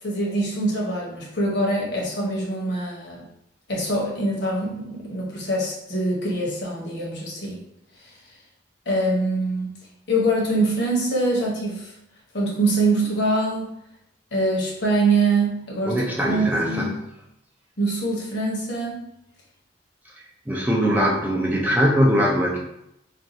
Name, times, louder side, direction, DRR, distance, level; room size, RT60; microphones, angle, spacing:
voice 1, 0.0-3.2 3.7-7.6 8.0-8.1 8.9-9.7 10.1-11.9 12.3-13.7 14.3-17.0 17.8-19.0, right 2 dB, 60° left, -3 dB, 0.9 m, -24 dB
voice 2, 15.9-16.9 20.5-22.6, equal, 10° right, -3 dB, 0.4 m, -21 dB
2.5 x 2.3 x 4.0 m, 0.80 s
head